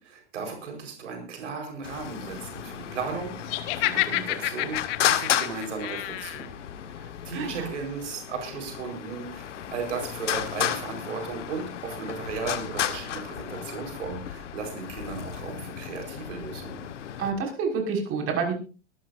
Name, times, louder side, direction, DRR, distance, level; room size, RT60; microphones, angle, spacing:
voice 1, 0.0-6.5 6.9-16.9, right 5 dB, 80° right, 3 dB, 4.9 m, -36 dB
Traffic noise roadway noise, 1.8-17.3, left 10 dB, 80° left, 1.6 m, -33 dB
Laughter, 3.5-6.5, left 17 dB, 55° left, 1.6 m, -29 dB
voice 2, 7.3-7.7 17.2-18.5, right 5 dB, 40° right, 2 dB, 5.9 m, -28 dB
23.5 x 13.0 x 2.7 m, 0.35 s
hypercardioid pair, 115°, 36 cm